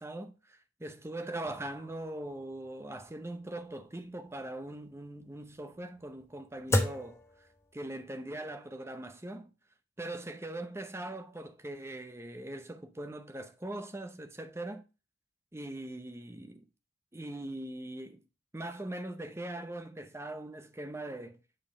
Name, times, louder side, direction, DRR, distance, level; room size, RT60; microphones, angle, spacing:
voice 1, 0.0-7.2 7.7-9.5 10.0-14.8 15.5-16.6 17.1-18.2 18.5-21.4, right 1 dB, 15° right, 0.7 m, -41 dB
sound 1, 1.4-8.1, left 1 dB, 15° left, 0.8 m, -37 dB
7.5 x 4.3 x 3.7 m
head